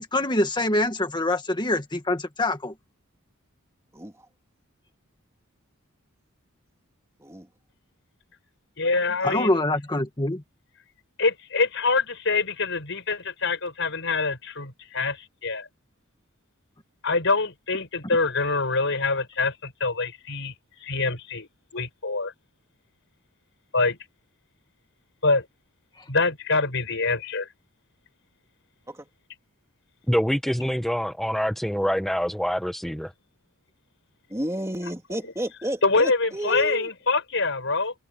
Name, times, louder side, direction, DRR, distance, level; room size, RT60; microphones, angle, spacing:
voice 1, 0.0-2.7 9.2-10.4, left 1 dB, 20° left, 1.9 m, -25 dB
voice 2, 3.9-4.3 7.2-7.5 9.2-9.4 28.9-29.1 34.3-36.9, right 1 dB, 15° right, 2.7 m, -32 dB
voice 3, 8.8-9.6 11.2-15.7 17.0-22.3 23.7-24.0 25.2-25.5 26.1-27.5 35.8-37.9, left 3 dB, 60° left, 5.8 m, -25 dB
voice 4, 30.1-33.1, equal, ahead, 0.9 m, -25 dB
head